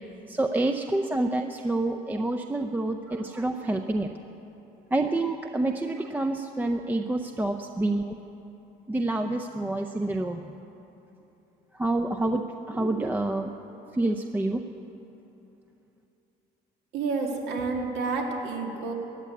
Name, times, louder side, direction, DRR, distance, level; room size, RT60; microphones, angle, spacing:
voice 1, 0.3-4.1 4.9-8.2 8.9-10.4 11.7-13.5 13.9-14.6, right 2 dB, 10° right, 3 dB, 0.6 m, -28 dB
voice 2, 16.9-18.9, right 4 dB, 80° right, 1 dB, 2.2 m, -29 dB
14.5 x 9.6 x 8.5 m, 3.0 s
cardioid pair, 110°, 17 cm